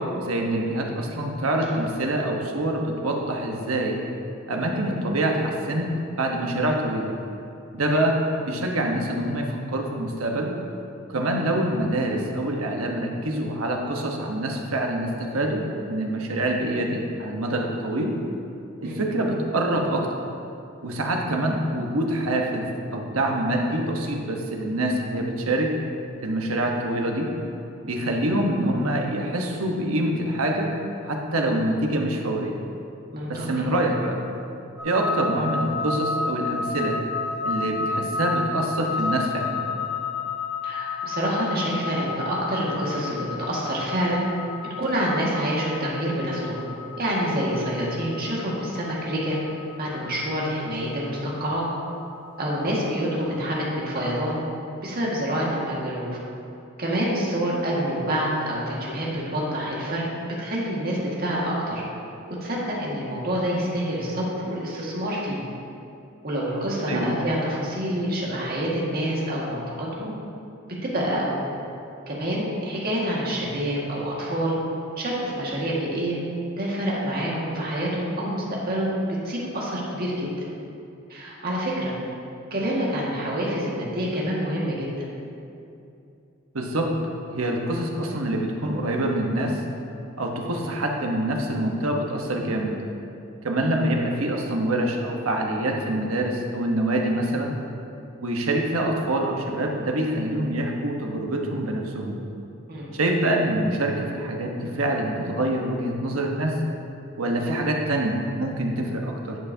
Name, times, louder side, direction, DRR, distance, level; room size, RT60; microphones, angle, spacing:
voice 1, 0.0-4.1 4.5-7.1 7.7-8.2 8.4-10.5 11.1-18.1 18.8-20.1 20.8-25.7 26.2-27.3 27.8-30.7 31.0-32.6 33.3-34.2 34.8-37.0 37.4-39.7 66.9-67.2 86.5-86.9 87.3-89.6 90.2-92.8 93.4-97.5 98.2-102.2 102.9-106.6 107.2-109.4, right 1 dB, 85° right, 1 dB, 1.1 m, -25 dB
voice 2, 33.1-33.7 40.6-44.2 44.8-46.6 47.0-49.4 49.8-51.7 52.4-54.4 54.8-56.1 56.8-60.0 60.4-61.8 62.3-65.4 66.2-70.1 70.7-71.4 72.1-74.6 75.0-76.2 76.6-78.9 79.2-80.5 81.1-81.9 82.5-85.1 102.7-102.9, equal, 45° right, -5 dB, 1.8 m, -27 dB
sound 1, 34.8-53.9, left 4 dB, 5° right, 1.6 m, -32 dB
10.5 x 8.0 x 2.8 m, 2.6 s
head